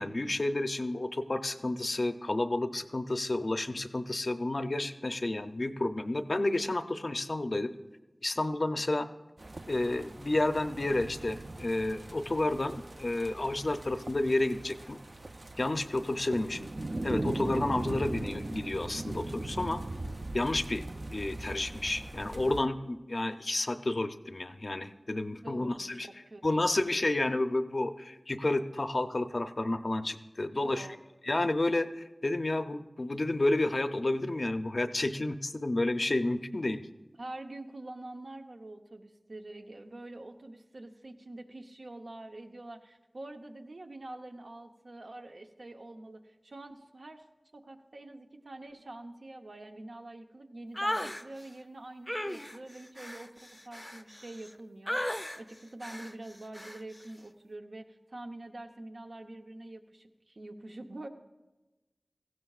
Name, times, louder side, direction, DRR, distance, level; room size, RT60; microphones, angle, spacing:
voice 1, 0.0-7.7 8.2-9.1 9.7-15.0 15.6-16.7 17.0-19.8 20.3-20.8 21.1-26.1 26.4-30.9 31.3-36.8, left 2 dB, 55° left, 10 dB, 0.6 m, -31 dB
sound 1, 9.4-22.6, right 2 dB, 50° right, 0.5 m, -39 dB
voice 2, 25.4-27.0 30.6-31.0 37.2-47.2 47.5-61.1, right 2 dB, 75° right, 4 dB, 0.8 m, -46 dB
sound 2, 50.8-51.2 52.1-54.5 54.9-55.4 55.8-56.1 56.5-56.8, left 1 dB, 15° left, 0.5 m, -35 dB
17.0 x 15.0 x 2.4 m, 1.1 s
wide cardioid pair, 55°, 0 cm